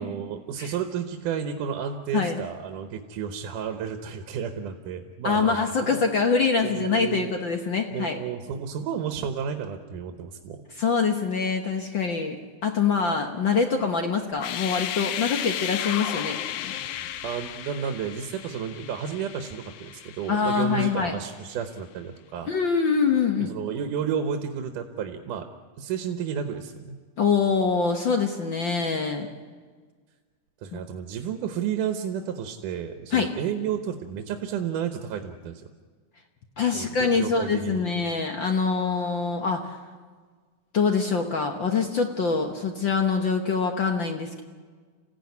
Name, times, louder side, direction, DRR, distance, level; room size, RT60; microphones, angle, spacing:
voice 1, 0.0-6.0 6.6-7.3 7.9-10.6 17.2-22.5 23.4-25.5 25.8-27.0 30.6-35.7 36.7-37.9, right 8 dB, 85° right, 6 dB, 2.7 m, -32 dB
voice 2, 5.2-8.2 10.8-12.4 12.6-16.4 20.3-21.1 22.5-23.5 27.2-29.3 30.7-30.8 33.1-33.3 36.6-39.8 40.7-44.4, left 5 dB, 55° left, 4 dB, 1.3 m, -24 dB
sound 1, 14.3-21.2, left 11 dB, 75° left, 2.2 m, -34 dB
27.5 x 16.0 x 9.6 m, 1.5 s
omnidirectional pair, 3.6 m